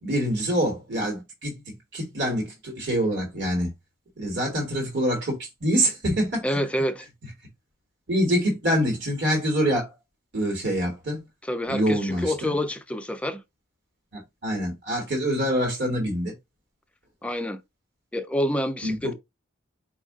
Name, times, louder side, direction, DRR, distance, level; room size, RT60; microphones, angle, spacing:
voice 1, 0.0-3.7 4.2-6.6 8.1-9.9 10.3-11.2 11.7-12.5 14.1-16.3 18.8-19.1, equal, 50° right, 1.3 m, -25 dB
voice 2, 6.4-7.1 11.4-13.4 17.2-17.6 18.1-19.1, equal, 5° left, 0.3 m, -27 dB
4.4 x 2.4 x 3.4 m
head